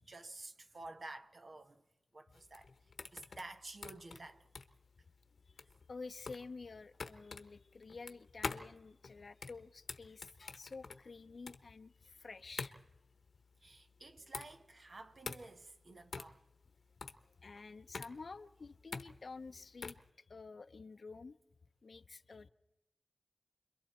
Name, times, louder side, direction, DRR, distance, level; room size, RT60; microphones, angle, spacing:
voice 1, 0.0-1.8 2.1-4.5 13.6-16.4 17.5-17.6, right 2 dB, 50° right, 1.4 m, -52 dB
sound 1, 2.3-20.1, left 4 dB, 75° left, 1.1 m, -47 dB
voice 2, 3.0-3.4 5.5-5.6 5.9-12.7 17.4-21.4 21.8-22.5, left 4 dB, 60° left, 0.7 m, -50 dB
30.0 x 22.5 x 4.4 m
wide cardioid pair, 80°, 0 cm